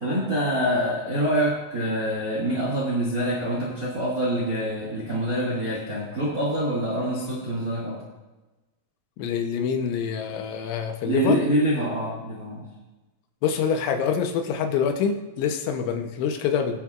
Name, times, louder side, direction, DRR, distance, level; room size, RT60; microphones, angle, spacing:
voice 1, 0.0-8.0 11.0-12.6, right 1 dB, 40° right, -5 dB, 1.3 m, -25 dB
voice 2, 9.2-11.4 13.4-16.8, left 7 dB, 80° left, 5 dB, 3.2 m, -26 dB
22.0 x 7.5 x 2.4 m, 1.1 s
omnidirectional pair, 5.3 m